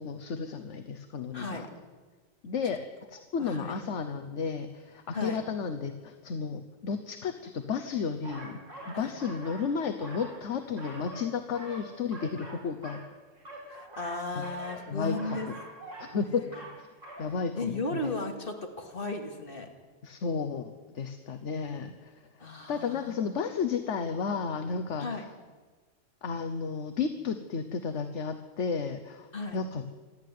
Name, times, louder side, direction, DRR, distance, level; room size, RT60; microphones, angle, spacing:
voice 1, 0.0-1.7 2.4-2.8 3.1-13.0 14.3-14.4 14.9-15.4 16.0-16.4 16.8-16.9 17.2-18.1 20.0-25.3 26.2-29.8, left 5 dB, 65° left, 8 dB, 1.3 m, -33 dB
voice 2, 1.3-1.7 3.4-3.8 5.1-5.4 8.9-9.1 13.7-15.5 16.0-16.2 17.6-19.7 22.4-23.3 25.0-25.2 29.3-29.6, left 2 dB, 45° left, 3 dB, 2.8 m, -35 dB
sound 1, 8.2-9.7 9.9-11.3 11.5-13.1 13.4-14.8 15.2-16.1 16.4-16.8 17.0-17.2, right 1 dB, 70° right, 6.1 m, -44 dB
26.5 x 11.0 x 9.5 m, 1.3 s
omnidirectional pair, 1.3 m